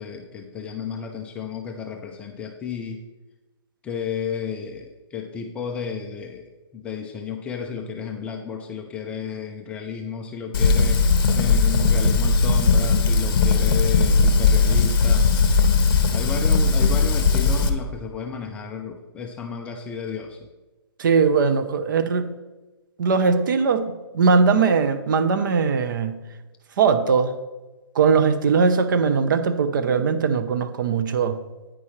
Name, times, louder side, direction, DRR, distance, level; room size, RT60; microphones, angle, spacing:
voice 1, 0.0-3.0 3.8-6.5 6.7-15.3 16.1-20.5, left 6 dB, 10° left, 3 dB, 0.4 m, -32 dB
Fire, 10.5-17.7, left 4 dB, 50° left, 1.1 m, -18 dB
voice 2, 21.0-22.3 23.0-26.2 26.8-27.3 27.9-31.4, right 5 dB, 50° right, 9 dB, 0.9 m, -20 dB
9.8 x 9.4 x 3.2 m, 1.1 s
hypercardioid pair, 155°, 14 cm